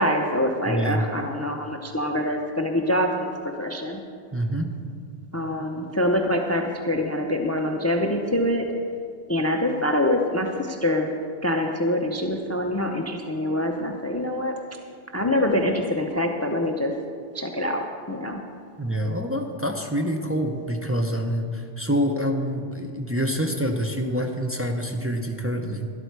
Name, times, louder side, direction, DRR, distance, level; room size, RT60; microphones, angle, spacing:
voice 1, 0.0-3.3 3.6-4.0 5.3-8.6 9.3-11.1 11.4-14.5 15.1-16.9 17.3-18.4, left 1 dB, 15° left, 3 dB, 0.6 m, -25 dB
voice 2, 0.6-1.1 4.3-4.7 18.8-25.9, equal, 15° right, 2 dB, 0.8 m, -26 dB
12.5 x 12.0 x 4.7 m, 2.2 s
omnidirectional pair, 1.1 m